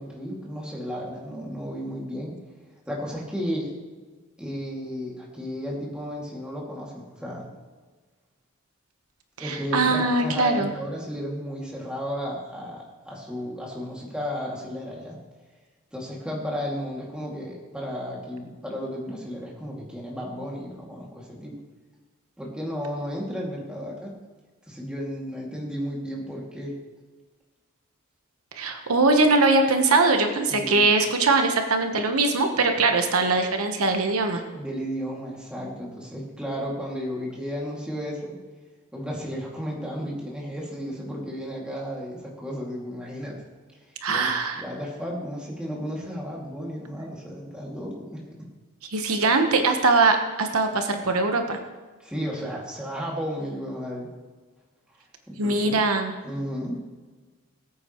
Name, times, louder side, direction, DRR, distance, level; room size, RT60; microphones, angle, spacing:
voice 1, 0.0-2.3 2.9-3.7 4.4-7.5 9.4-15.2 15.9-21.6 22.4-24.1 24.7-26.8 30.5-30.9 34.5-38.4 38.9-43.4 44.1-44.3 44.6-48.2 52.0-54.1 55.3-55.8 56.2-56.8, equal, 5° right, -4 dB, 2.3 m, -33 dB
voice 2, 9.4-10.7 28.5-34.4 44.0-44.6 48.9-51.6 55.4-56.1, right 3 dB, 80° right, 5 dB, 1.1 m, -21 dB
20.0 x 8.6 x 3.1 m, 1.3 s
head